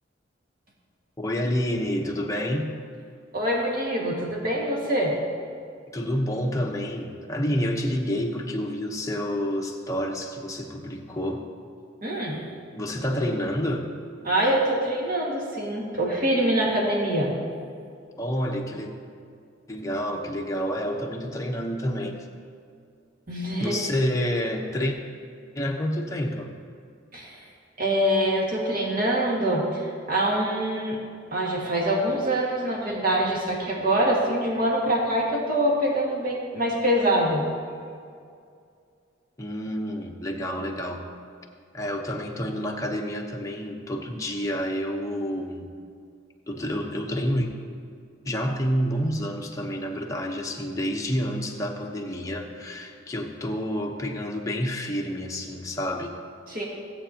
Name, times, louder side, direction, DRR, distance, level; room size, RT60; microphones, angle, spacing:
voice 1, 1.2-2.7 5.9-11.5 12.7-13.9 18.2-18.9 19.7-22.3 23.6-25.0 25.5-26.5 39.4-41.0 41.7-45.7 46.5-47.5 48.2-56.1, equal, 15° left, 1 dB, 0.9 m, -28 dB
voice 2, 3.3-5.2 12.0-12.4 14.2-17.3 23.3-23.8 27.1-27.5 27.8-31.0 31.3-37.5 56.5-56.6, right 1 dB, 50° right, -3 dB, 1.9 m, -24 dB
16.5 x 7.9 x 2.8 m, 2.3 s
head